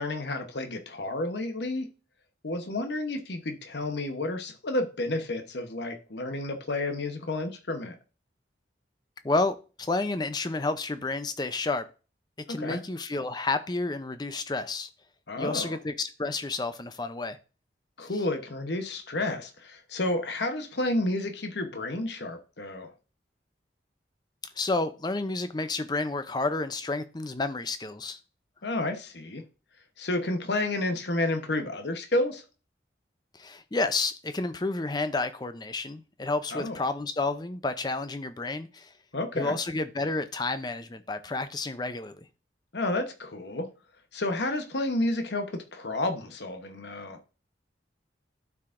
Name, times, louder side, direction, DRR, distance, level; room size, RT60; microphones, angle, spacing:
voice 1, 0.0-1.9 2.4-8.0 12.5-12.8 15.3-15.8 18.0-22.9 28.6-29.4 30.0-32.4 36.5-36.8 39.1-39.5 42.7-43.7 44.1-47.2, left 2 dB, 65° left, 0.9 m, -30 dB
voice 2, 9.2-11.9 12.5-14.9 15.4-17.4 24.6-28.2 33.3-38.9 39.4-42.2, left 3 dB, 20° left, 0.5 m, -30 dB
12.0 x 4.8 x 2.5 m
head